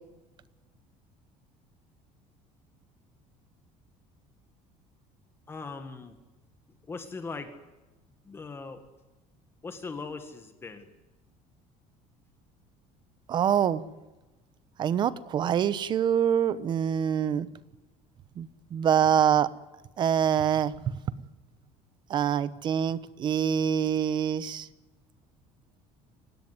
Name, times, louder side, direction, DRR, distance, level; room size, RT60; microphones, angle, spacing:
voice 1, 5.5-6.2 6.9-7.6 8.3-8.9 9.6-10.9, left 4 dB, 15° left, 8 dB, 1.8 m, -39 dB
voice 2, 13.3-13.8 14.8-17.5 18.4-19.5 20.0-20.7 22.1-24.7, right 9 dB, 35° right, 17 dB, 0.9 m, -25 dB
24.5 x 18.0 x 9.6 m, 1.2 s
cardioid pair, 165°, 14 cm